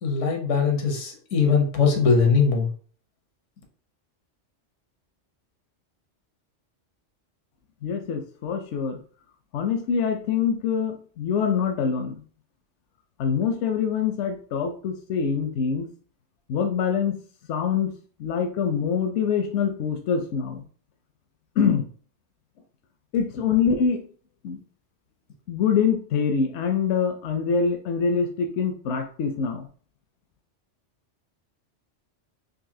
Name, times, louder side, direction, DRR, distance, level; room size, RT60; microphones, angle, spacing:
voice 1, 0.0-2.7, left 5 dB, 90° left, 2 dB, 1.3 m, -21 dB
voice 2, 7.8-9.0 9.5-12.2 13.2-15.9 16.5-17.2 17.5-17.9 18.2-20.6 21.6-21.8 23.1-24.0 24.4-24.6 25.5-29.7, left 6 dB, 75° left, 4 dB, 0.9 m, -24 dB
4.0 x 2.6 x 2.7 m, 0.43 s
omnidirectional pair, 1.2 m